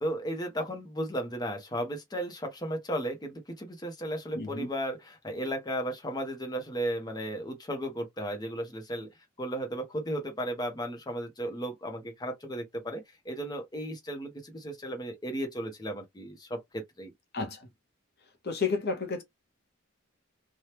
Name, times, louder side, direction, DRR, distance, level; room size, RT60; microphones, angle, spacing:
voice 1, 0.0-9.1 9.4-17.1, right 1 dB, 20° left, 0.8 m, -35 dB
voice 2, 4.3-4.7 17.3-17.6 18.4-19.2, left 4 dB, 50° left, 0.8 m, -31 dB
2.9 x 2.2 x 3.2 m
head